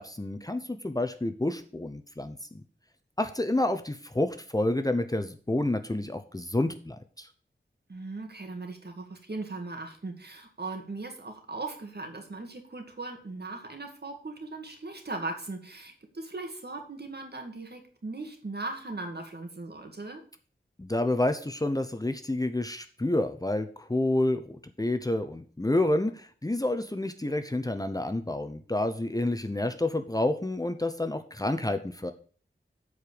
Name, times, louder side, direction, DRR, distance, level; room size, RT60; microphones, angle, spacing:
voice 1, 0.0-2.4 3.2-7.3 20.8-32.1, left 1 dB, 20° left, 8 dB, 0.8 m, -29 dB
voice 2, 7.9-20.2, right 3 dB, 55° right, 4 dB, 2.2 m, -38 dB
8.5 x 4.8 x 6.9 m, 0.42 s
wide cardioid pair, 70°, 20 cm